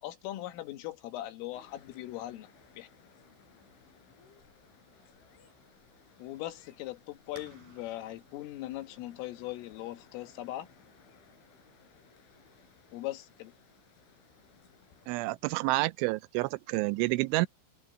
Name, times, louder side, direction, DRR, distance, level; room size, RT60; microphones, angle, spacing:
voice 1, 0.0-2.5 2.8-2.9 6.2-10.7 12.9-13.5, left 15 dB, 90° left, 4.2 m, -40 dB
sound 1, 1.5-15.1, left 5 dB, 75° left, 6.9 m, -61 dB
sound 2, 7.4-12.8, right 2 dB, 45° right, 7.6 m, -60 dB
voice 2, 15.1-17.5, right 21 dB, 85° right, 2.9 m, -29 dB
omnidirectional pair, 5.7 m